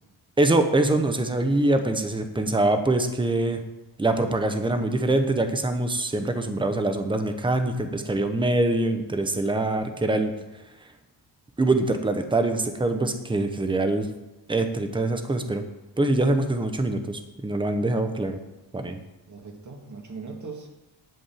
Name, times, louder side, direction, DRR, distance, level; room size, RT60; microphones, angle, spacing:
voice 1, 0.4-3.6 4.0-10.3 11.6-14.1 14.5-15.6 16.0-18.4 18.7-19.0, right 2 dB, 10° right, 7 dB, 1.0 m, -24 dB
voice 2, 17.8-18.2 19.3-20.7, right 4 dB, 45° right, 2 dB, 2.0 m, -41 dB
11.0 x 5.3 x 8.5 m, 0.99 s
wide cardioid pair, 140°, 42 cm